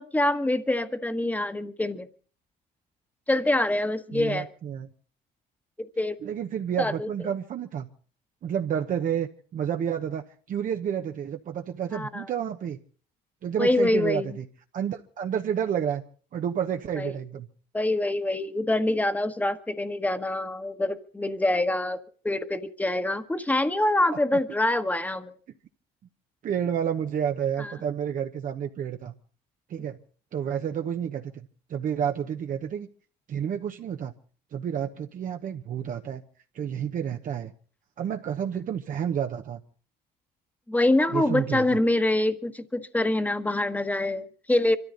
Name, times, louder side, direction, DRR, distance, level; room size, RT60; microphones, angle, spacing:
voice 1, 0.0-2.1 3.3-4.5 5.8-6.2 6.8-7.1 11.9-12.3 13.6-14.4 17.0-17.2 17.7-25.3 27.6-27.7 40.7-44.8, left 1 dB, 10° left, 1.3 m, -25 dB
voice 2, 4.1-4.9 6.2-7.9 8.4-12.8 13.4-14.4 14.7-16.0 16.3-17.5 24.1-24.2 26.4-29.1 29.7-30.0 30.3-32.9 33.3-34.1 34.5-36.2 36.5-37.5 38.0-39.6 41.1-41.7, right 8 dB, 50° right, 1.0 m, -30 dB
25.0 x 13.5 x 3.9 m
cardioid pair, 110°, 17 cm